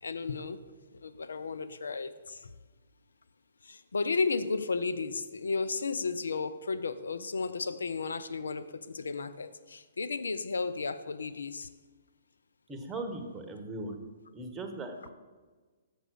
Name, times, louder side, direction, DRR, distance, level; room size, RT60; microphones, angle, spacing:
voice 1, 0.0-0.6 0.9-2.5 3.6-11.7, left 4 dB, 75° left, 0.4 m, -33 dB
voice 2, 12.7-14.0 14.3-14.9, right 2 dB, 15° right, 1.1 m, -38 dB
6.8 x 6.0 x 6.3 m
figure-of-eight pair, 125°, 0 cm